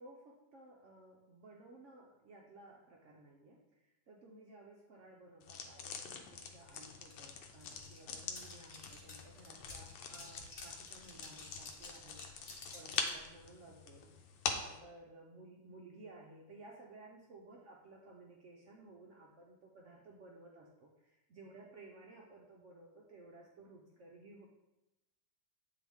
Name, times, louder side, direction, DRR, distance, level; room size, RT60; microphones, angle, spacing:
voice 1, 0.0-24.5, right 2 dB, 80° right, -2 dB, 0.6 m, -57 dB
sound 1, 5.4-14.8, left 5 dB, 80° left, 1.4 m, -44 dB
sound 2, 6.5-6.6 6.7-13.2, left 2 dB, 40° left, 1.0 m, -52 dB
8.5 x 3.8 x 3.5 m, 0.97 s
omnidirectional pair, 2.2 m